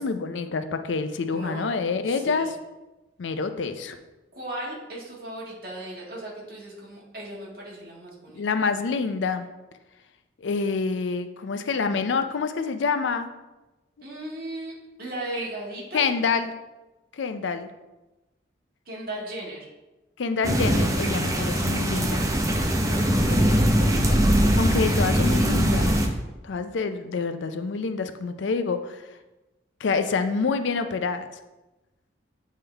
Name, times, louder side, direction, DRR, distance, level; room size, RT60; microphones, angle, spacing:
voice 1, 0.0-2.5 3.2-4.0 8.3-9.5 10.4-13.3 15.9-16.5 17.1-17.7 20.2-22.3 23.1-26.0 26.4-29.1 29.8-31.3, left 4 dB, 90° left, 9 dB, 0.5 m, -27 dB
voice 2, 1.3-1.7 2.0-2.5 4.3-8.4 14.0-14.7 15.0-16.0 18.8-19.6 23.3-23.8, right 1 dB, 55° right, -4 dB, 1.7 m, -36 dB
sound 1, 20.4-26.1, equal, 15° right, 0.5 m, -21 dB
8.4 x 3.7 x 3.4 m, 1.1 s
head